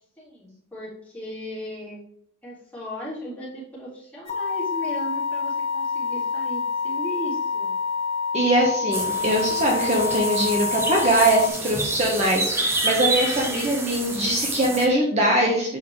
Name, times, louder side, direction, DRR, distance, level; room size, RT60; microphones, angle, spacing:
voice 1, 0.2-2.0 2.4-7.8, equal, 10° left, -8 dB, 3.1 m, -36 dB
sound 1, 4.3-11.5, left 5 dB, 30° left, 1.2 m, -27 dB
voice 2, 8.3-15.8, right 1 dB, 35° right, -1 dB, 1.1 m, -22 dB
sound 2, 8.9-14.9, right 2 dB, 10° right, 0.8 m, -28 dB
7.3 x 5.6 x 3.2 m, 0.68 s
head